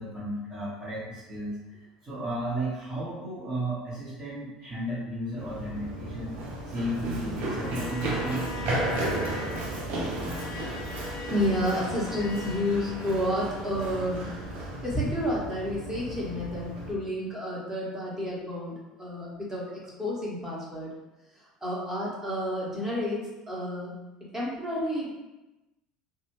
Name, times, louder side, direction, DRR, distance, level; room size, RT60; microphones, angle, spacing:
voice 1, 0.0-6.4 6.6-8.6, right 1 dB, 30° right, -10 dB, 1.2 m, -34 dB
Run, 5.4-16.9, right 1 dB, 55° right, 0.6 m, -34 dB
Bowed string instrument, 7.5-13.8, left 1 dB, 65° left, 0.5 m, -41 dB
voice 2, 11.3-14.3 14.8-20.9 21.4-23.9 24.3-25.2, equal, 15° right, -6 dB, 1.2 m, -30 dB
2.7 x 2.2 x 3.0 m, 1.0 s
figure-of-eight pair, 65°, 3 cm